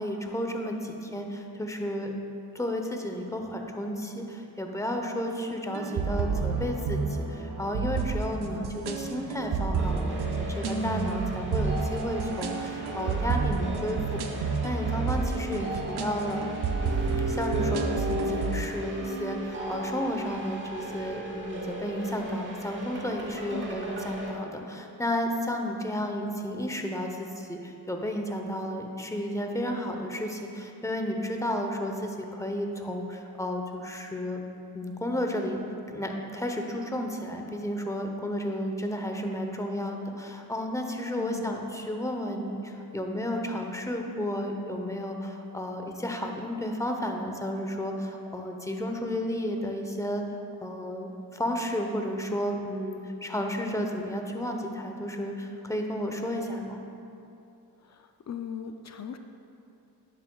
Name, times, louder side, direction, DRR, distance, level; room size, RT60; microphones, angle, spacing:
voice 1, 0.0-2.1 2.5-14.2 14.6-15.7 16.0-16.4 17.2-34.4 34.7-35.6 35.9-50.3 50.6-56.8, equal, 10° left, 3 dB, 0.8 m, -32 dB
sound 1, 5.7-18.7, right 4 dB, 75° right, 0.7 m, -30 dB
voice 2, 8.5-9.4 15.5-16.0 23.5-23.8 26.0-26.1 41.1-41.6 57.8-59.2, left 7 dB, 45° left, 6 dB, 0.4 m, -40 dB
sound 2, 9.8-24.3, right 1 dB, 30° right, 1.1 m, -36 dB
11.0 x 7.5 x 2.3 m, 2.7 s
cardioid pair, 75°, 39 cm